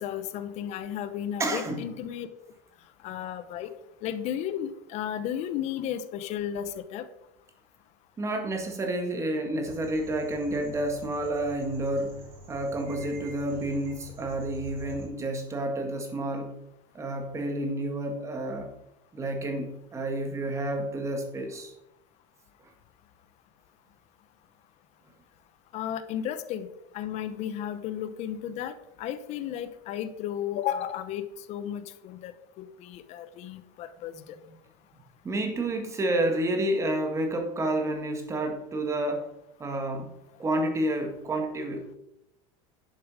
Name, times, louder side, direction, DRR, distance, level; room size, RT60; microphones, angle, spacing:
voice 1, 0.0-2.3 3.0-3.7 4.0-7.1 25.7-26.7 26.9-34.4, left 10 dB, 45° left, 12 dB, 0.9 m, -34 dB
voice 2, 1.4-1.8 8.2-12.2 12.5-16.6 16.9-18.7 19.1-21.7 35.2-39.3 39.6-40.1 40.4-42.0, right 1 dB, 20° right, 5 dB, 1.7 m, -30 dB
sound 1, 9.6-15.1, right 1 dB, 40° right, 3.3 m, -46 dB
11.0 x 7.2 x 4.9 m, 0.87 s
cardioid pair, 160°, 16 cm